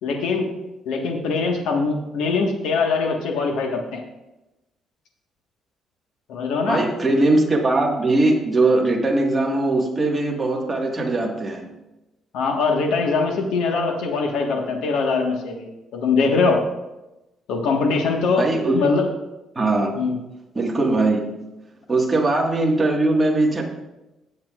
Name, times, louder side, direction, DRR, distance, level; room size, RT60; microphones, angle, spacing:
voice 1, 0.0-0.5 0.8-4.0 6.3-6.8 12.3-16.6 17.5-18.5 18.7-19.1 19.9-20.1, left 4 dB, 90° left, 2 dB, 1.6 m, -22 dB
voice 2, 6.7-11.7 18.4-18.9 19.6-20.0 20.6-21.3 21.9-23.6, right 2 dB, 20° right, -1 dB, 1.8 m, -20 dB
17.5 x 7.4 x 2.5 m, 0.98 s
cardioid pair, 140°, 0 cm